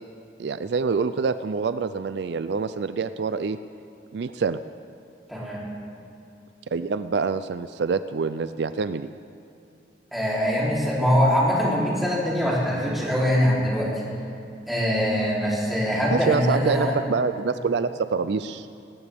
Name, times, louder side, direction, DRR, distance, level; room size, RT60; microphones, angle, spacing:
voice 1, 0.4-3.6 4.1-4.6 6.7-9.1 16.1-18.7, right 5 dB, 65° right, 12 dB, 0.4 m, -26 dB
voice 2, 5.3-5.6 10.1-13.9 14.7-17.0, equal, ahead, -7 dB, 3.5 m, -23 dB
19.5 x 16.5 x 3.6 m, 2.8 s
head